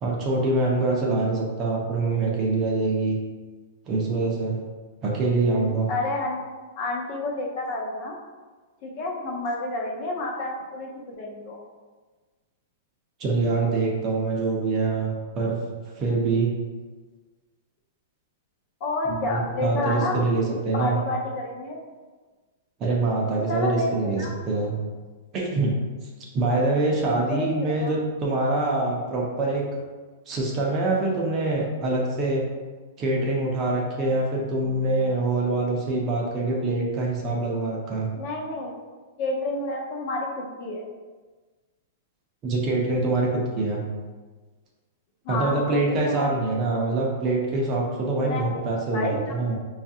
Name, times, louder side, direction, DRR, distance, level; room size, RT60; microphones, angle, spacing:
voice 1, 0.0-3.2 3.9-4.6 5.0-5.9 13.2-15.6 16.0-16.5 19.1-21.0 22.8-24.8 25.3-25.7 26.3-29.8 30.3-32.4 33.0-38.1 42.4-43.8 45.3-49.6, right 2 dB, 20° right, -2 dB, 0.5 m, -25 dB
voice 2, 5.9-6.4 6.8-8.2 8.8-11.6 18.8-20.3 20.7-21.8 23.5-24.3 27.0-27.9 38.1-38.7 39.2-40.8 45.2-46.3 46.6-46.8 48.2-48.7 48.9-49.4, left 2 dB, 35° left, -1 dB, 0.5 m, -30 dB
4.8 x 2.4 x 2.7 m, 1.3 s
supercardioid pair, 175°, 0 cm